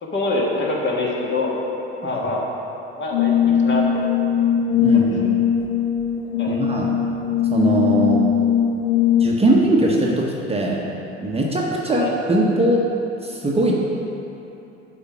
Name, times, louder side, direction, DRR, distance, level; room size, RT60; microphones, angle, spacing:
voice 1, 0.0-1.6 2.0-2.5 2.9-3.8 4.9-5.3 6.4-6.6 11.9-12.1, left 2 dB, 35° left, -3 dB, 1.7 m, -25 dB
Brass instrument, 3.1-9.5, left 8 dB, 70° left, 0.6 m, -20 dB
voice 2, 4.8-5.3 6.5-6.9 7.5-8.2 9.2-10.9 11.2-12.8 13.2-13.7, right 1 dB, 20° right, -2 dB, 1.0 m, -20 dB
6.6 x 5.0 x 6.0 m, 2.9 s
hypercardioid pair, 70°, 33 cm